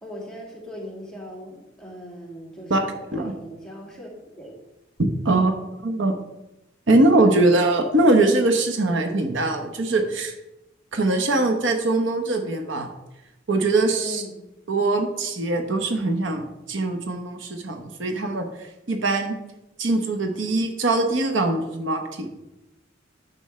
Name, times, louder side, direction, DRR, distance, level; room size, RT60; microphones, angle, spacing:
voice 1, 0.0-4.5 5.2-5.5 14.0-14.4, equal, 5° left, -3 dB, 2.2 m, -39 dB
voice 2, 2.7-3.3 5.2-5.6 5.8-6.1 6.9-10.3 10.9-12.9 13.5-14.2 14.7-16.4 16.7-19.4 19.8-22.3, right 2 dB, 70° right, 5 dB, 1.0 m, -22 dB
10.5 x 7.0 x 3.2 m, 0.95 s
head